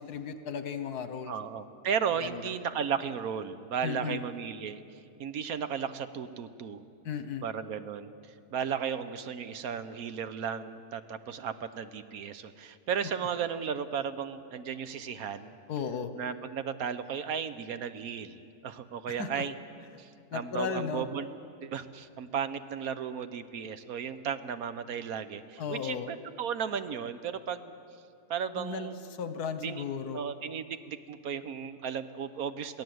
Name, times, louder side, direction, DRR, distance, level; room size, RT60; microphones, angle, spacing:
voice 1, 0.0-1.3 2.2-2.4 3.8-4.2 7.0-7.4 15.7-16.1 19.1-19.4 20.3-21.0 25.6-26.1 28.5-30.2, left 6 dB, 80° left, 10 dB, 1.6 m, -35 dB
voice 2, 1.3-6.8 7.4-15.6 16.2-19.5 20.0-21.3 21.6-27.7 28.3-29.0 29.6-29.8 30.1-32.8, right 7 dB, 70° right, 11 dB, 1.3 m, -35 dB
22.5 x 16.0 x 7.9 m, 2.4 s
omnidirectional pair, 1.6 m